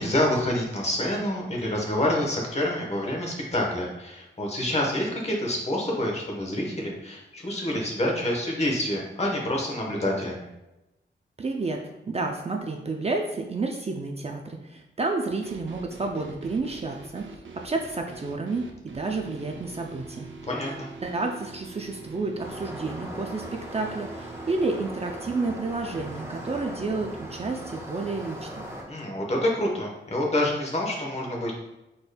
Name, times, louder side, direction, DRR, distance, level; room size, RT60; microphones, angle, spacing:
voice 1, 0.0-10.5 20.5-20.9 28.9-31.5, left 1 dB, 35° left, -1 dB, 1.0 m, -27 dB
voice 2, 11.4-20.3 21.0-28.7, right 3 dB, 35° right, 2 dB, 0.4 m, -30 dB
sound 1, 15.4-27.7, right 4 dB, 85° right, 0.6 m, -44 dB
sound 2, 22.4-28.8, equal, 15° right, 0.9 m, -39 dB
4.9 x 4.3 x 2.2 m, 0.95 s
wide cardioid pair, 140°, 19 cm